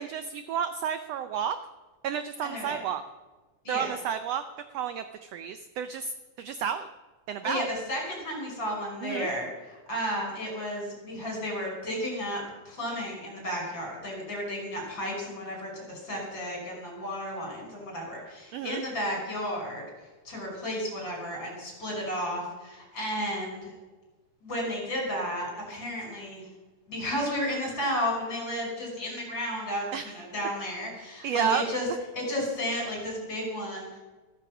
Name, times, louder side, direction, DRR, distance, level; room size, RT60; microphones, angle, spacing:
voice 1, 0.0-1.6 2.0-3.0 3.7-4.4 4.7-6.1 6.4-6.9 7.3-7.7 9.0-9.3 18.5-18.8 29.9-30.1 31.2-31.6, right 8 dB, 80° right, 10 dB, 1.5 m, -31 dB
voice 2, 2.4-2.8 3.6-4.0 7.4-19.9 20.2-23.7 24.4-26.5 26.9-31.9 32.1-34.0, equal, 35° left, 0 dB, 6.3 m, -33 dB
15.0 x 14.0 x 6.0 m, 1.2 s
omnidirectional pair, 3.7 m